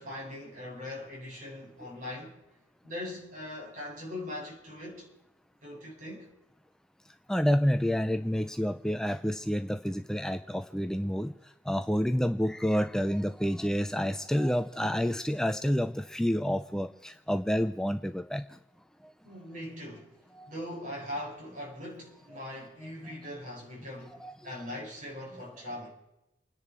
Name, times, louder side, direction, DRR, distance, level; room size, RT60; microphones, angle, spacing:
voice 1, 0.0-2.4 2.8-5.1 5.6-6.3 19.2-20.2 20.5-25.9, left 1 dB, 45° right, 6.3 m, -41 dB
voice 2, 7.3-11.4 11.7-18.6 19.0-19.1 20.4-20.5 22.3-22.4 22.8-22.9 24.2-24.3, equal, 5° left, 0.5 m, -29 dB
29.5 x 10.5 x 4.5 m
head